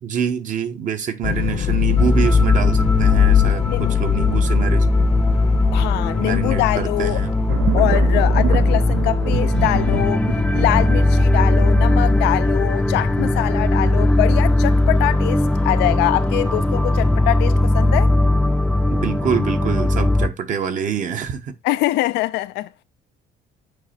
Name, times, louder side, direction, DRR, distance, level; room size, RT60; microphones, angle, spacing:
voice 1, 0.0-4.9 6.2-7.3 18.9-21.5, right 7 dB, 50° right, 1.1 m, -26 dB
sound 1, 1.2-14.1, left 12 dB, 40° left, 0.7 m, -24 dB
sound 2, 2.0-20.3, left 1 dB, 5° left, 0.5 m, -18 dB
voice 2, 5.7-7.2 7.7-10.2 10.5-18.1 21.6-22.7, left 17 dB, 85° left, 0.4 m, -23 dB
sound 3, 7.5-17.1 17.5-18.1, right 11 dB, 75° right, 0.6 m, -29 dB
8.4 x 2.8 x 4.3 m
cardioid pair, 110°, 17 cm